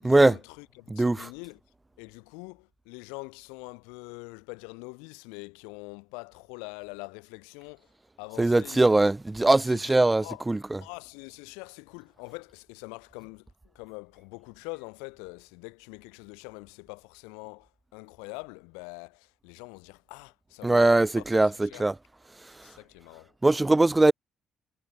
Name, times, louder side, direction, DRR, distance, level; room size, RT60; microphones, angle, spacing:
voice 1, 0.0-1.6 2.0-7.9 8.2-9.1 9.7-10.4 10.8-21.2 21.5-21.8 22.6-23.3, left 35 dB, 85° left, 7.2 m, -44 dB
voice 2, 0.9-1.3 8.4-10.8 20.6-21.9 23.4-24.1, right 2 dB, 15° right, 0.4 m, -21 dB
hypercardioid pair, 55°, 0 cm